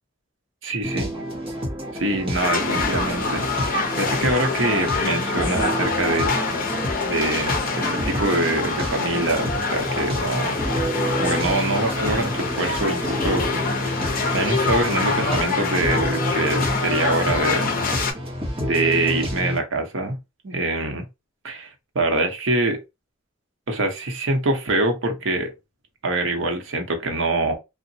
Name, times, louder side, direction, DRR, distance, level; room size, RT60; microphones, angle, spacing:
voice 1, 0.6-1.1 1.9-6.4 7.0-10.6 11.2-13.5 13.9-14.0 14.3-17.8 18.6-20.2 20.4-21.1 21.4-22.8 23.7-25.5 26.0-27.6, right 2 dB, 70° right, 0.8 m, -24 dB
sound 1, 0.8-19.6, equal, 30° right, 0.9 m, -29 dB
sound 2, 2.3-18.1, left 4 dB, 45° left, 0.6 m, -26 dB
2.8 x 2.1 x 2.6 m
head